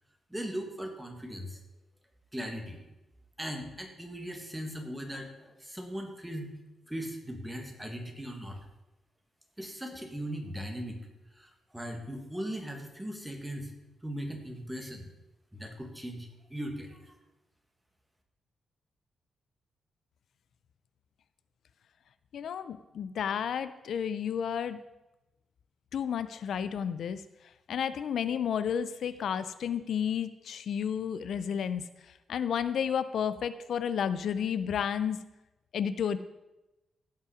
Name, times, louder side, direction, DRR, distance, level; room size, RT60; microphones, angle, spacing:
voice 1, 0.3-1.6 2.3-2.8 3.4-6.6 6.9-8.6 9.6-11.1 11.3-13.7 14.0-15.1 15.5-17.1, equal, 5° right, 3 dB, 1.8 m, -39 dB
voice 2, 22.3-24.8 25.9-27.2 27.7-35.2 35.7-36.2, left 8 dB, 70° left, 13 dB, 0.4 m, -32 dB
16.0 x 5.6 x 5.0 m, 0.99 s
cardioid pair, 110°, 0 cm